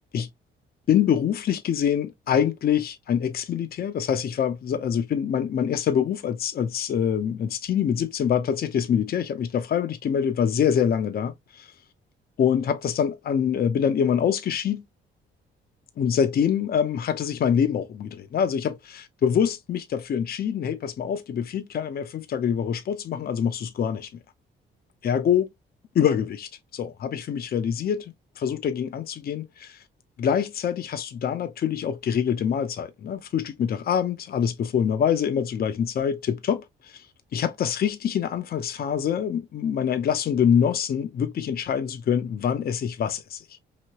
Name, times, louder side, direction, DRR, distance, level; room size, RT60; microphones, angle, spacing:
voice 1, 0.9-11.7 12.4-14.8 16.0-24.1 25.0-25.5 25.9-29.8 30.2-36.6 37.3-43.4, left 8 dB, 50° left, 0.6 m, -25 dB
3.0 x 2.7 x 2.8 m
cardioid pair, 90°, 20 cm